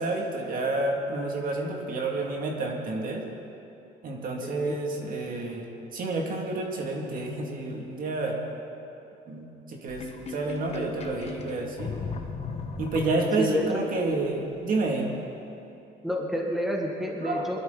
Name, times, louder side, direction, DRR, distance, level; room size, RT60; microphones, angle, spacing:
voice 1, 0.0-3.3 4.0-5.7 5.9-8.4 9.3-12.0 12.8-15.1 17.2-17.5, right 2 dB, 55° right, 0 dB, 2.3 m, -29 dB
voice 2, 4.4-4.8 13.1-13.9 16.0-17.6, equal, ahead, 0 dB, 1.8 m, -29 dB
Sink (filling or washing), 9.9-13.6, left 5 dB, 40° left, 1.4 m, -37 dB
22.0 x 12.5 x 4.0 m, 2.9 s
cardioid pair, 110°, 17 cm